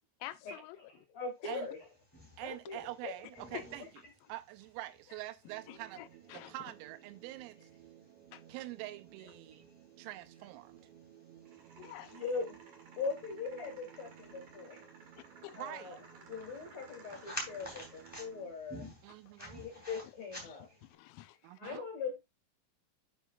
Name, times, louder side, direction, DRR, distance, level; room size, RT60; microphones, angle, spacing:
voice 1, 0.2-0.8 1.4-1.6 3.5-3.6 5.7-6.5 8.3-8.4 11.8-12.2 17.1-17.2 20.4-21.8, left 15 dB, 85° left, 3.3 m, -49 dB
voice 2, 0.9-1.8 2.4-3.1 12.1-12.6 13.0-14.8 15.6-16.0 16.3-18.9 19.4-20.8 21.6-22.2, left 4 dB, 60° left, 1.8 m, -41 dB
sound 1, 1.5-20.9, equal, 10° left, 0.8 m, -52 dB
voice 3, 2.4-3.9 4.3-6.0 6.3-7.7 8.5-9.7 10.0-10.8 15.6-16.0 19.0-19.7 21.4-21.9, right 16 dB, 90° right, 3.4 m, -45 dB
sound 2, 5.5-18.5, right 11 dB, 75° right, 2.9 m, -58 dB
sound 3, 11.5-18.4, right 4 dB, 55° right, 2.1 m, -58 dB
11.5 x 5.6 x 2.4 m
omnidirectional pair, 5.9 m